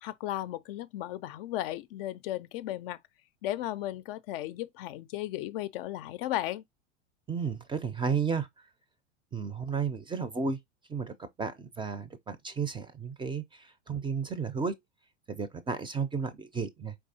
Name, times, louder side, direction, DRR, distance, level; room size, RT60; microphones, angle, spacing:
voice 1, 0.0-3.0 3.4-6.6, left 14 dB, 50° left, 0.5 m, -35 dB
voice 2, 7.3-8.5 9.3-10.6 10.9-14.8 15.3-17.0, right 5 dB, 15° right, 0.5 m, -33 dB
4.6 x 3.5 x 2.7 m
hypercardioid pair, 95°, 37 cm